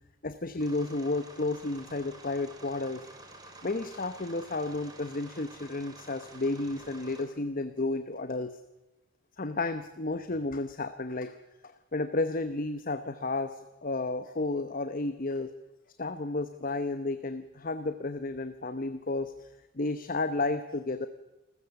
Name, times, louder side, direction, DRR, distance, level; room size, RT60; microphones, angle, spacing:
voice 1, 0.2-3.1 3.6-8.6 9.4-11.3 11.6-15.5 16.0-19.5 19.7-21.1, left 2 dB, 40° left, 10 dB, 0.9 m, -32 dB
sound 1, 0.6-7.2, right 2 dB, 20° right, 3.6 m, -50 dB
28.5 x 14.5 x 7.1 m, 1.1 s
head